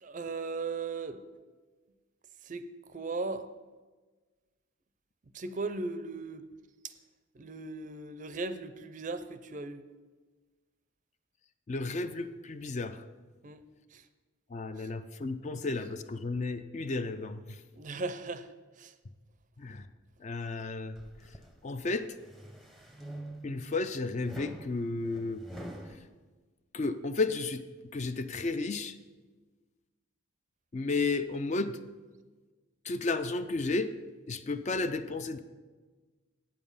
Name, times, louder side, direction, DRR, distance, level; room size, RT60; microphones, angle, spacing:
voice 1, 0.0-1.2 2.4-3.5 5.3-6.5 6.8-6.9 7.3-9.8 13.4-13.6 13.9-14.1 14.8-14.9 17.7-18.9, right 3 dB, 40° right, 11 dB, 0.5 m, -37 dB
voice 2, 11.7-13.0 14.5-17.6 19.6-19.9 20.2-21.0 21.6-22.1 23.4-25.4 26.7-27.6 27.9-28.9 30.7-31.8 32.8-33.9 34.3-35.4, left 3 dB, 35° left, 11 dB, 0.4 m, -33 dB
sound 1, 21.0-21.5 22.0-23.7 24.2-26.0, right 1 dB, ahead, 0.7 m, -45 dB
8.5 x 7.3 x 5.5 m, 1.3 s
head